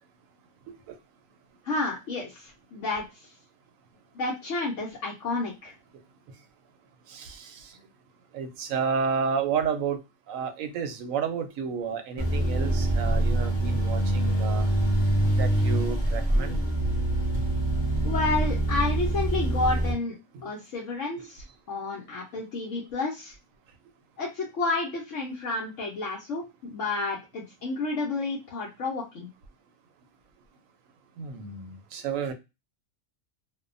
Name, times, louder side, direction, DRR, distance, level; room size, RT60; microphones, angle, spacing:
voice 1, 1.6-3.0 4.1-5.7 18.0-20.2 20.4-23.3 24.2-29.3, left 3 dB, 65° left, 1.0 m, -30 dB
voice 2, 7.1-7.8 8.3-10.0 10.3-14.7 15.3-16.6 20.3-20.4 21.2-21.3 31.2-32.3, right 6 dB, 80° right, 1.0 m, -31 dB
sound 1, 12.2-19.9, right 1 dB, 25° left, 0.6 m, -25 dB
2.6 x 2.2 x 2.5 m
omnidirectional pair, 1.4 m